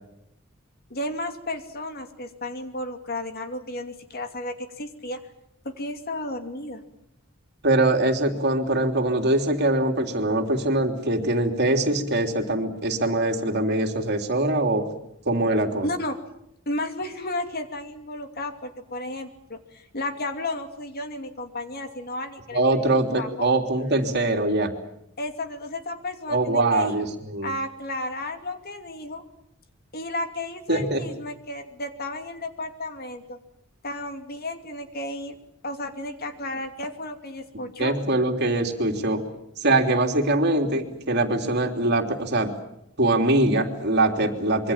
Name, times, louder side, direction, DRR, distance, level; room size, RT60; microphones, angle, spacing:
voice 1, 0.9-5.2 5.6-6.8 15.8-16.2 16.7-22.9 23.2-23.5 25.2-27.0 27.4-29.2 29.9-33.4 33.8-35.4 35.6-38.0, left 1 dB, 50° left, 7 dB, 2.6 m, -33 dB
voice 2, 7.6-14.8 15.2-15.9 22.5-24.7 26.3-27.5 30.7-31.0 37.8-39.2 39.6-42.5 43.0-44.7, right 2 dB, 55° right, 4 dB, 3.3 m, -23 dB
26.0 x 23.5 x 7.4 m, 0.78 s
head